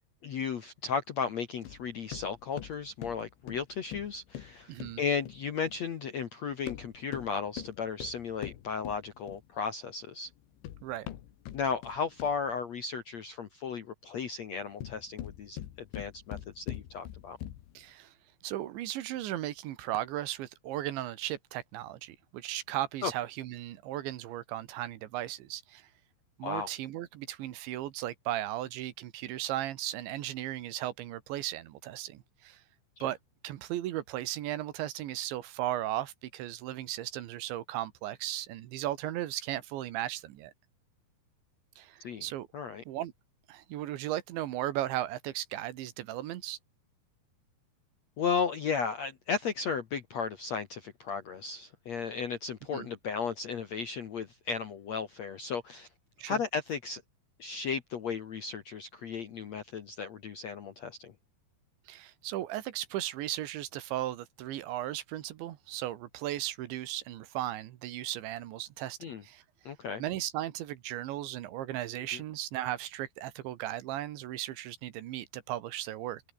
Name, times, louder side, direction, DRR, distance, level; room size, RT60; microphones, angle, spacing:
voice 1, 0.2-10.3 11.5-15.6 15.9-17.4 23.0-23.1 26.4-26.7 42.0-42.3 42.5-42.8 48.2-55.9 56.3-57.0 57.4-61.1 69.0-69.2 69.7-70.0 72.1-72.2, left 6 dB, 60° left, 1.8 m, -35 dB
sound 1, 1.7-5.8 6.5-9.6 10.3-12.6 14.6-17.8, left 12 dB, 80° left, 4.2 m, -44 dB
voice 2, 4.7-5.0 10.8-11.1 17.8-18.1 18.4-25.9 26.4-32.6 33.0-33.2 33.4-40.5 41.8-42.5 42.9-43.1 43.5-46.6 52.7-52.9 56.2-56.4 61.9-69.0 69.2-69.4 70.0-76.2, right 14 dB, 80° right, 3.8 m, -36 dB
omnidirectional pair, 5.2 m